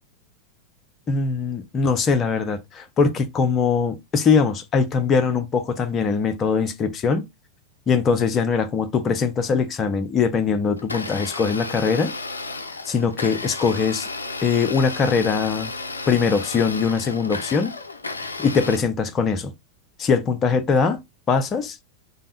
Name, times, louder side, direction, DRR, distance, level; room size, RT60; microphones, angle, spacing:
voice 1, 1.1-7.3 7.9-12.1 12.9-14.1 14.4-15.7 16.1-17.8 18.4-19.5 20.0-21.0 21.3-21.8, left 5 dB, 25° left, 0.5 m, -21 dB
Domestic sounds home sounds, 10.8-18.8, left 3 dB, 75° left, 0.3 m, -33 dB
3.4 x 2.1 x 2.5 m
figure-of-eight pair, 90°, 0 cm